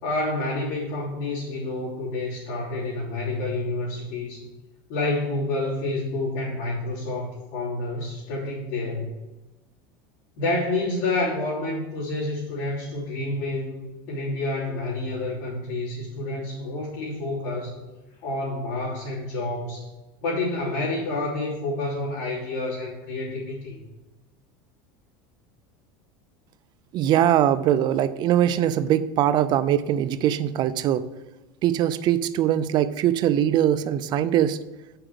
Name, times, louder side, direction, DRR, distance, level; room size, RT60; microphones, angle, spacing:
voice 1, 0.0-4.4 4.9-9.1 10.4-17.8 18.2-19.9 20.2-23.8, left 2 dB, 65° left, -8 dB, 3.2 m, -29 dB
voice 2, 26.9-31.1 31.6-34.6, right 11 dB, 40° right, 13 dB, 0.5 m, -22 dB
8.9 x 6.0 x 4.9 m, 1.1 s
supercardioid pair, 135°, 11 cm